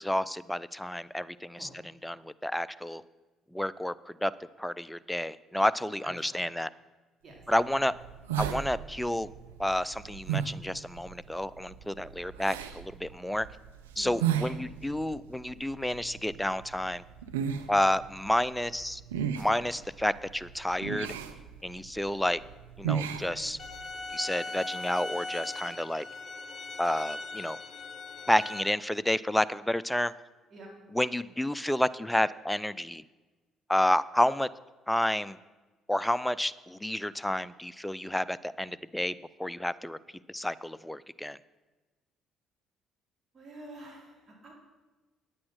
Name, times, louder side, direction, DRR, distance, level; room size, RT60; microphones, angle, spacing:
voice 1, 0.0-1.7 2.0-3.0 3.5-4.3 4.6-6.7 7.5-7.9 8.4-9.3 9.6-13.5 14.0-17.0 17.7-19.0 19.4-21.1 21.6-22.4 22.8-23.6 24.1-26.1 26.8-27.6 28.3-30.1 30.9-33.0 33.7-34.5 34.9-35.4 35.9-40.0 40.3-41.4, left 1 dB, 5° left, 17 dB, 0.5 m, -30 dB
voice 2, 6.0-6.4 7.2-7.4 14.0-14.2 30.5-30.7 43.3-44.5, right 1 dB, 40° right, -1 dB, 3.8 m, -48 dB
sound 1, 7.4-24.0, right 9 dB, 85° right, 0.6 m, -37 dB
sound 2, 23.6-28.6, left 3 dB, 45° left, 1.2 m, -39 dB
9.5 x 8.6 x 6.4 m, 1.2 s
hypercardioid pair, 55°, 0 cm